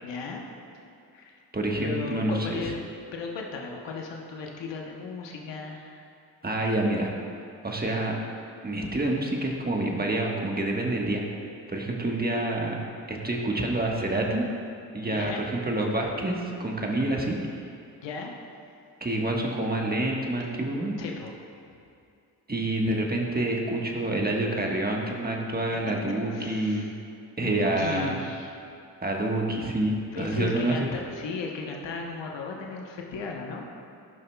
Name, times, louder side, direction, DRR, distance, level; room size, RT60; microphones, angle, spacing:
voice 1, 0.0-0.4 0.7-0.8 1.1-1.4 1.8-2.8 3.1-6.1 15.1-15.4 18.0-18.3 21.0-21.3 26.3-26.9 27.4-28.5 30.1-33.6, left 4 dB, 80° left, 0 dB, 1.0 m, -35 dB
voice 2, 1.5-2.7 6.4-7.1 7.6-8.1 8.6-11.2 11.7-12.8 13.1-14.5 14.9-17.4 19.0-21.0 22.5-26.9 27.4-28.2 29.0-30.9, right 1 dB, 20° right, 0 dB, 1.4 m, -27 dB
15.5 x 5.5 x 2.3 m, 2.5 s
supercardioid pair, 50°, 43 cm